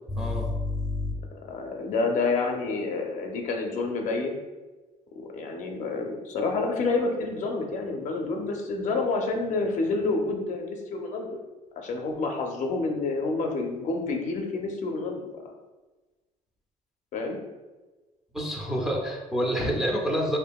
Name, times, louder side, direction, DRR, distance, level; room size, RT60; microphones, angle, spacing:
voice 1, 0.1-1.1 18.3-20.4, equal, 5° right, -2 dB, 0.4 m, -27 dB
voice 2, 1.5-4.4 5.2-11.4 11.8-15.3 17.1-17.4, left 3 dB, 60° left, 2 dB, 0.5 m, -28 dB
2.7 x 2.5 x 2.2 m, 1.2 s
cardioid pair, 105°, 15 cm